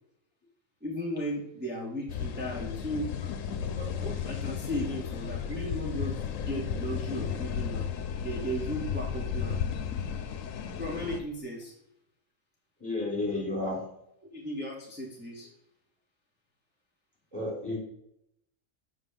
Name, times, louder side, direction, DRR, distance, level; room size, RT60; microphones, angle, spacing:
voice 1, 0.8-3.1 3.6-7.9 8.2-9.6 10.8-11.7 14.3-15.5, equal, 10° right, -3 dB, 1.2 m, -36 dB
sound 1, 2.1-11.2, left 7 dB, 85° left, 1.1 m, -34 dB
voice 2, 12.8-13.8 17.3-17.8, left 2 dB, 20° left, -3 dB, 3.4 m, -31 dB
7.8 x 5.8 x 3.6 m, 0.78 s
omnidirectional pair, 1.3 m